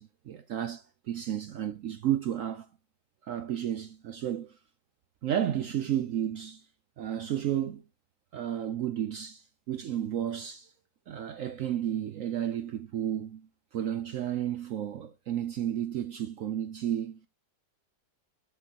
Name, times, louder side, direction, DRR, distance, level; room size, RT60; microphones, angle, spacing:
voice 1, 0.0-2.7 3.2-4.6 5.2-6.6 7.0-7.8 8.3-10.7 11.1-17.2, right 10 dB, 70° right, 0.8 m, -32 dB
11.5 x 7.6 x 2.9 m
omnidirectional pair, 1.9 m